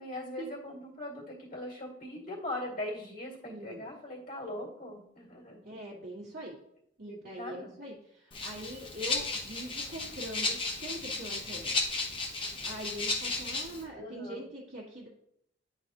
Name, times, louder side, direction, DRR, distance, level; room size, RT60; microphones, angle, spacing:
voice 1, 0.0-5.6 7.1-7.8 13.9-14.4, left 1 dB, 50° left, -3 dB, 2.1 m, -40 dB
voice 2, 3.4-3.8 5.6-6.6 7.0-12.0 12.6-15.1, right 1 dB, 55° right, -6 dB, 1.6 m, -43 dB
Rattle (instrument), 8.3-13.8, left 3 dB, 30° left, 1.0 m, -34 dB
10.5 x 4.0 x 2.9 m, 0.74 s
head